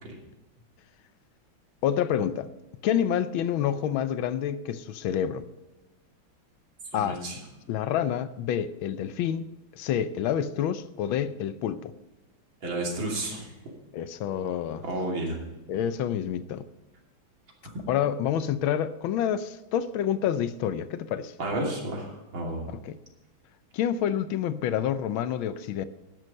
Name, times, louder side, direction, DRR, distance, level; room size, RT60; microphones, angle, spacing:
voice 1, 1.8-2.5 2.8-5.5 6.9-7.2 7.7-11.9 13.9-14.8 15.7-16.7 17.9-21.3 22.7-23.0 23.7-25.8, left 9 dB, 80° left, 14 dB, 1.5 m, -28 dB
voice 2, 6.9-7.4 12.6-13.5 14.8-15.4 21.4-22.7, right 1 dB, 70° right, -1 dB, 3.6 m, -31 dB
13.0 x 11.0 x 5.3 m, 1.1 s
omnidirectional pair, 2.2 m